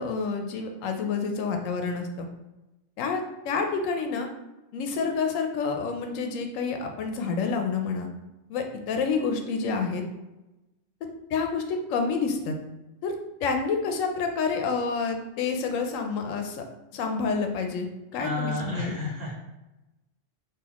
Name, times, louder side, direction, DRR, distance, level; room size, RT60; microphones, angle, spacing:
voice 1, 0.0-2.3 3.0-4.3 4.7-8.1 8.5-10.0 11.0-12.6 13.0-13.1 13.4-16.6 16.9-19.0, left 5 dB, 85° left, 4 dB, 1.0 m, -28 dB
voice 2, 18.2-19.3, left 2 dB, 50° right, -5 dB, 1.3 m, -31 dB
3.9 x 2.8 x 2.9 m, 1.0 s
omnidirectional pair, 1.3 m